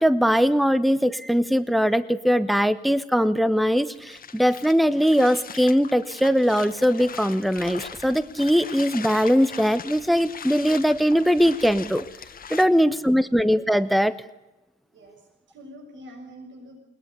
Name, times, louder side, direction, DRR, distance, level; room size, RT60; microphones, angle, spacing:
voice 1, 0.0-12.0 12.5-14.2, equal, ahead, 14 dB, 1.1 m, -21 dB
sound 1, 3.9-12.7, left 7 dB, 45° left, 1.6 m, -40 dB
voice 2, 12.6-13.3 14.9-16.8, equal, 70° right, 2 dB, 7.4 m, -46 dB
21.5 x 19.5 x 8.3 m, 0.96 s
cardioid pair, 90°, 20 cm